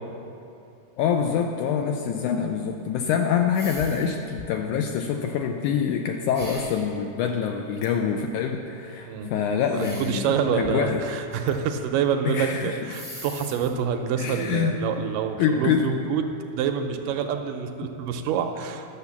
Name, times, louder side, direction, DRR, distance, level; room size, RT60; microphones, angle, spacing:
voice 1, 1.0-11.0 12.3-12.8 14.2-14.8 15.4-15.9, left 7 dB, 80° left, 3 dB, 1.8 m, -25 dB
sound 1, 3.5-4.1 4.4-4.7 6.3-6.9 7.8-7.9 9.7-10.3 10.6-11.5 11.8-11.9 12.4-12.5 12.9-13.7, left 1 dB, 30° left, 0.9 m, -40 dB
voice 2, 10.0-19.0, right 7 dB, 80° right, 5 dB, 2.1 m, -27 dB
11.5 x 6.9 x 7.1 m, 2.6 s
omnidirectional pair, 4.0 m